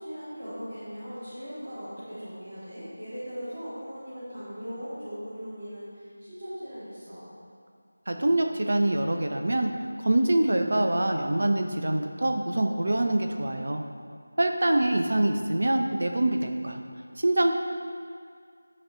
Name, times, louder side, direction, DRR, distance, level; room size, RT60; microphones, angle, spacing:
voice 1, 0.0-7.3 14.6-14.7, equal, 30° right, -16 dB, 2.4 m, -39 dB
voice 2, 8.1-9.7 10.0-13.8 14.4-16.8 17.2-17.5, right 1 dB, 50° right, 4 dB, 0.8 m, -25 dB
11.5 x 5.5 x 4.0 m, 2.1 s
figure-of-eight pair, 180°, 0 cm